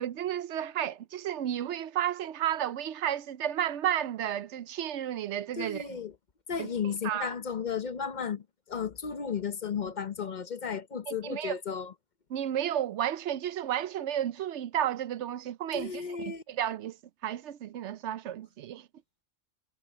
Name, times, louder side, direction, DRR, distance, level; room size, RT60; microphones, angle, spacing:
voice 1, 0.0-6.0 6.6-6.7 7.0-7.3 11.1-11.5 12.3-17.0 17.2-18.9, right 11 dB, 65° right, 0.8 m, -32 dB
voice 2, 5.5-6.1 6.5-11.9 15.7-16.4, left 6 dB, 40° left, 0.8 m, -34 dB
omnidirectional pair, 1.3 m